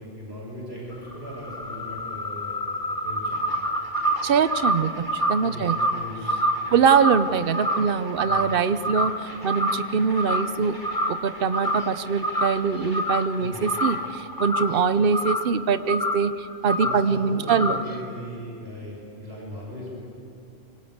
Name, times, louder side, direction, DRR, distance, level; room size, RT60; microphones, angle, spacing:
voice 1, 0.0-3.4 5.4-6.2 6.7-6.8 8.2-8.5 13.3-13.6 16.8-20.1, equal, 85° right, -3 dB, 7.0 m, -38 dB
sound 1, 0.9-8.6 8.8-9.2 9.5-10.6 10.8-11.2 11.5-12.0 12.2-13.3 13.6-15.5 15.9-16.3 16.7-17.1 17.5-18.0, equal, 20° left, 1.4 m, -27 dB
sound 2, 3.3-14.1, equal, 20° right, 5.6 m, -45 dB
voice 2, 4.2-5.8 6.7-10.8 11.1-17.8, right 6 dB, 65° right, 12 dB, 1.0 m, -23 dB
26.5 x 24.5 x 8.2 m, 2.5 s
omnidirectional pair, 1.0 m